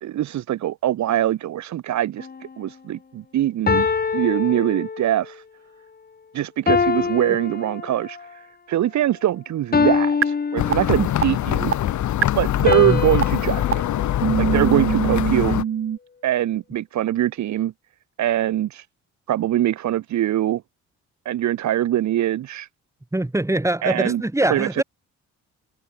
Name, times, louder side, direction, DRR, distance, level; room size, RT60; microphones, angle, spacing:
voice 1, 0.0-2.3 2.6-3.9 4.1-5.4 6.3-8.2 8.7-11.7 12.3-13.8 14.4-15.5 16.2-17.7 18.2-18.8 19.3-20.6 21.2-22.7 23.8-24.2 24.5-24.8, right 12 dB, 70° right, 1.2 m, -23 dB
sound 1, 2.2-2.5 3.7-5.3 6.7-8.3 9.7-11.4 12.7-15.1, left 5 dB, 30° left, 1.9 m, -25 dB
sound 2, 10.2-10.3 10.7-10.8 11.2-11.3 11.7-11.8 12.2-12.3 12.7-12.8 13.2-13.3 13.7-13.8 14.2-16.0, right 9 dB, 45° right, 1.1 m, -22 dB
sound 3, 10.6-15.6, left 12 dB, 70° left, 1.7 m, -23 dB
voice 2, 23.1-24.8, right 1 dB, 10° right, 4.2 m, -23 dB
cardioid pair, 90°, 30 cm